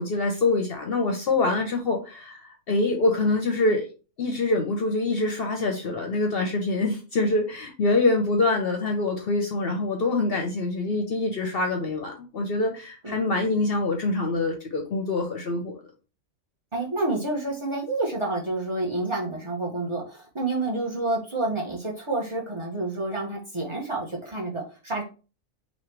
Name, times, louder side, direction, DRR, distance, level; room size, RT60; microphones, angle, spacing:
voice 1, 0.0-3.9 4.2-15.8, left 2 dB, 55° left, 4 dB, 0.8 m, -25 dB
voice 2, 16.7-25.0, right 2 dB, 25° right, 0 dB, 1.0 m, -29 dB
3.1 x 2.9 x 4.5 m, 0.34 s
omnidirectional pair, 1.4 m